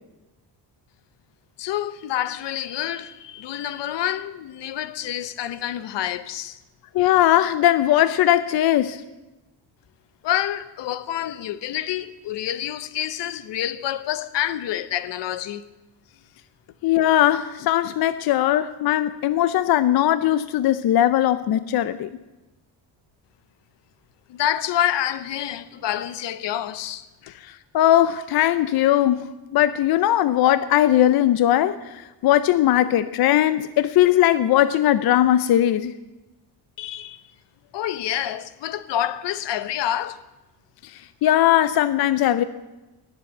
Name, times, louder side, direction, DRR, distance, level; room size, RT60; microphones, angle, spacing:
voice 1, 1.6-6.6 10.2-15.6 24.3-27.3 36.8-37.2 37.7-40.2, left 11 dB, 85° left, 0.9 m, -28 dB
voice 2, 6.9-9.0 16.8-22.1 27.4-35.9 41.2-42.4, left 12 dB, 60° left, 0.6 m, -19 dB
19.0 x 7.6 x 9.0 m
cardioid pair, 180°, 42 cm